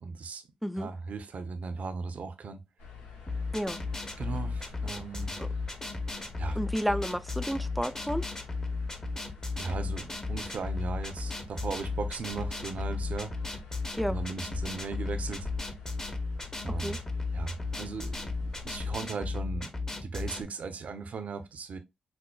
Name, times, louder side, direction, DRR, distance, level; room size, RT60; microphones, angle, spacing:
voice 1, 0.0-0.4 0.8-2.6 4.2-5.4 6.4-6.6 9.6-13.3 14.1-15.5 16.6-17.0 17.3-19.7 20.0-21.8, right 4 dB, 65° right, 0.6 m, -37 dB
sound 1, 2.8-19.0, left 5 dB, 90° left, 0.7 m, -47 dB
sound 2, 3.3-20.4, left 3 dB, 25° left, 0.8 m, -35 dB
voice 2, 6.6-8.2 14.0-14.2 16.7-17.0, equal, ahead, 0.3 m, -31 dB
5.1 x 2.1 x 2.2 m
supercardioid pair, 45°, 3 cm